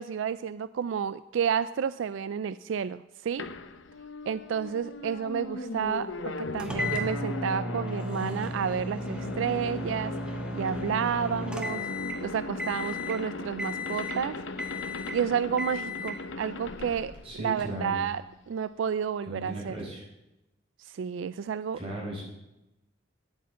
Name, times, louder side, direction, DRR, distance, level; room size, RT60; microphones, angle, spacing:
voice 1, 0.0-3.5 4.3-6.1 6.4-10.1 10.5-11.9 12.2-14.4 15.1-17.1 17.4-19.7 20.8-21.8, right 7 dB, 75° right, 15 dB, 0.3 m, -30 dB
sound 1, 3.4-17.9, left 3 dB, 75° left, 0.7 m, -38 dB
voice 2, 6.4-6.9 17.2-17.9 19.3-20.0 21.7-22.2, right 1 dB, 30° right, -3 dB, 4.6 m, -37 dB
sound 2, 6.6-12.3 12.6-13.2 13.6-14.2 14.6-15.2 15.6-16.2, left 1 dB, 5° right, 1.2 m, -35 dB
9.4 x 8.8 x 7.2 m, 0.95 s
head